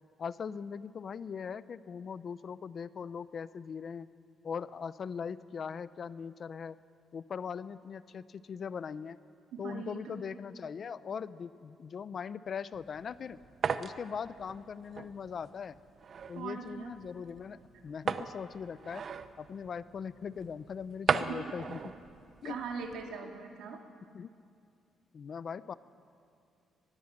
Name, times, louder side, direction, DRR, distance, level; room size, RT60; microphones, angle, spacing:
voice 1, 0.2-4.1 4.4-6.8 7.1-9.2 9.6-13.4 13.8-15.8 16.3-19.0 19.4-21.8 22.4-22.6 24.1-24.3 25.1-25.7, left 6 dB, 50° left, 15 dB, 0.7 m, -40 dB
voice 2, 9.5-10.2 16.3-16.9 21.2-21.6 22.4-23.8, right 6 dB, 85° right, 3 dB, 2.7 m, -41 dB
sound 1, 12.7-23.2, right 6 dB, 50° right, 1.0 m, -38 dB
24.0 x 20.5 x 7.5 m, 2.5 s
cardioid pair, 90°, 0 cm